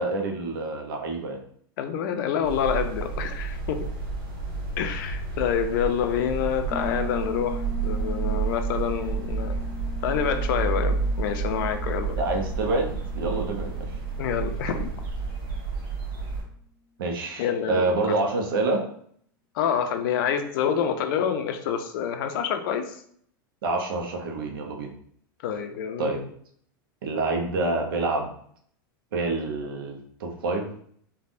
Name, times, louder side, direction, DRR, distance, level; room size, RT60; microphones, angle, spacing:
voice 1, 0.0-1.4 12.2-13.9 17.0-18.8 23.6-24.9 26.0-26.2 27.0-28.3 29.1-30.7, right 2 dB, 75° right, 3 dB, 0.7 m, -27 dB
voice 2, 1.8-3.9 4.8-9.5 10.0-12.2 14.2-14.9 17.4-17.9 19.5-22.9 25.4-26.3, left 8 dB, 65° left, 7 dB, 0.5 m, -27 dB
sound 1, 2.4-16.4, right 4 dB, 60° right, 1.2 m, -30 dB
Piano, 6.7-15.2, left 3 dB, 25° right, 0.5 m, -41 dB
3.4 x 2.2 x 2.5 m, 0.63 s
hypercardioid pair, 105°, 12 cm